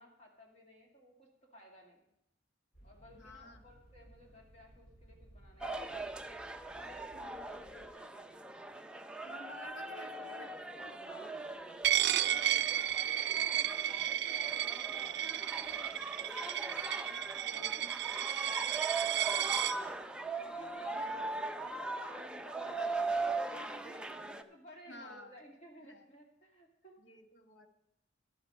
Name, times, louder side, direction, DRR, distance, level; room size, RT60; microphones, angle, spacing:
voice 1, 0.0-2.0 2.8-6.1 6.7-8.3 9.3-10.5 10.8-11.7 12.0-16.5 17.0-20.0 20.4-23.0 23.6-27.0, equal, 35° left, 0 dB, 2.2 m, -58 dB
sound 1, 2.7-7.9, right 1 dB, 55° left, 3.0 m, -60 dB
voice 2, 3.1-3.6 7.1-7.5 9.2-10.9 12.3-12.9 17.6-17.8 20.9-21.3 23.7-24.6 24.9-25.4 25.9-26.0 27.0-27.7, left 1 dB, 75° left, 5 dB, 1.4 m, -53 dB
sound 2, 5.6-24.4, right 3 dB, 5° right, 0.5 m, -40 dB
Coin (dropping), 11.8-19.8, right 11 dB, 60° right, 0.4 m, -33 dB
11.5 x 8.7 x 5.5 m, 0.81 s
head